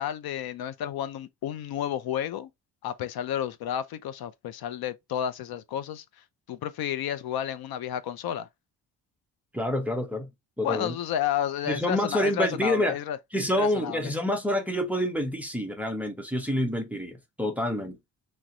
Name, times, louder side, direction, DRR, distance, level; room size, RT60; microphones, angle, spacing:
voice 1, 0.0-2.5 2.8-8.5 10.6-13.2 13.5-14.1, left 10 dB, 80° left, 0.6 m, -31 dB
voice 2, 9.5-10.3 10.6-11.0 11.7-13.0 13.3-18.0, left 1 dB, 5° right, 0.5 m, -27 dB
3.2 x 3.0 x 3.7 m
wide cardioid pair, 180°, 36 cm